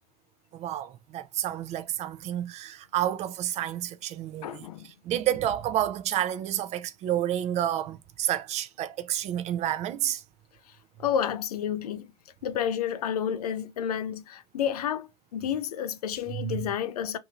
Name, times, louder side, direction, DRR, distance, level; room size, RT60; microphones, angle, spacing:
voice 1, 0.5-10.2 16.3-16.7, right 12 dB, 35° right, 0.4 m, -30 dB
voice 2, 4.4-4.9 11.0-12.1 12.4-17.2, left 9 dB, 85° left, 0.5 m, -30 dB
2.6 x 2.6 x 2.8 m
hypercardioid pair, 100°, 19 cm